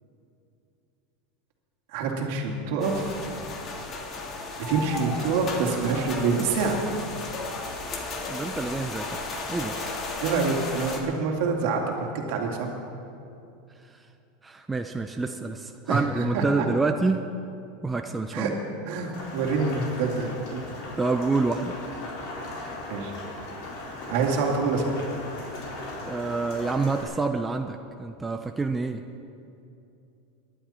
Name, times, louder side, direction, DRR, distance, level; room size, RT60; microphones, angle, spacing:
voice 1, 1.9-3.2 4.7-6.8 10.2-12.7 15.9-16.0 16.3-16.7 18.3-18.5 18.9-20.6 22.9-23.1 24.1-24.9, right 4 dB, 65° right, 1 dB, 2.4 m, -26 dB
sound 1, 2.8-11.0, left 3 dB, 35° left, 1.8 m, -34 dB
voice 2, 8.3-9.8 13.9-14.0 14.4-17.3 17.8-18.5 21.0-21.8 26.1-29.0, right 3 dB, 10° right, 5 dB, 0.5 m, -27 dB
Rain, 19.1-27.0, left 2 dB, 60° left, 4.1 m, -38 dB
19.0 x 11.5 x 4.4 m, 2.7 s
supercardioid pair, 135°, 0 cm